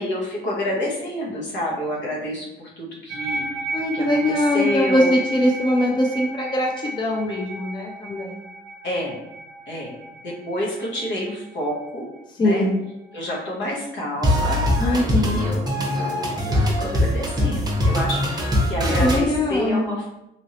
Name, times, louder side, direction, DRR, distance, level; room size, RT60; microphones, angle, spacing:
voice 1, 0.0-3.5 3.9-5.1 8.8-9.2 9.7-12.0 12.4-12.7 13.1-20.1, left 1 dB, 65° left, -3 dB, 1.0 m, -29 dB
sound 1, 3.1-13.7, right 2 dB, 60° right, 0.6 m, -34 dB
voice 2, 3.7-8.4 12.4-12.7 14.8-15.4 18.8-19.9, left 1 dB, 25° left, 0 dB, 0.4 m, -22 dB
sound 2, 14.2-19.2, left 1 dB, 20° right, 0.7 m, -22 dB
3.0 x 2.6 x 2.8 m, 0.90 s
cardioid pair, 90°, 20 cm